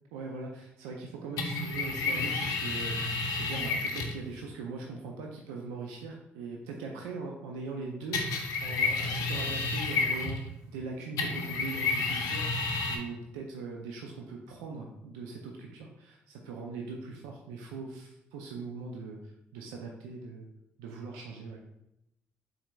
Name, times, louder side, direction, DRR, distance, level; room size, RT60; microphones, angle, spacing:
voice 1, 0.1-3.0 3.2-10.4 10.7-19.2 19.5-20.5 20.8-21.6, right 4 dB, 85° right, 0 dB, 0.4 m, -41 dB
sound 1, 1.4-4.2 8.1-10.6 11.2-13.0, left 3 dB, 75° left, 0.6 m, -30 dB
4.2 x 3.8 x 2.2 m, 0.85 s
hypercardioid pair, 45°, 6 cm